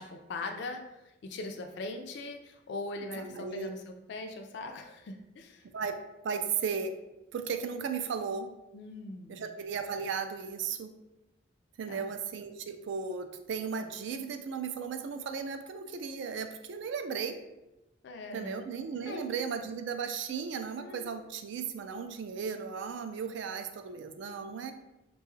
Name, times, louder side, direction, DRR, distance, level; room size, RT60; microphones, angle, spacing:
voice 1, 0.0-5.7 8.7-9.4 11.9-12.1 18.0-18.6 19.1-19.3 20.8-21.1, left 2 dB, 55° left, 4 dB, 0.3 m, -41 dB
voice 2, 3.2-3.7 5.7-6.9 7.3-8.5 9.3-10.9 11.8-17.4 18.3-24.7, right 6 dB, 60° right, 8 dB, 0.3 m, -36 dB
3.9 x 2.3 x 3.0 m, 0.98 s
head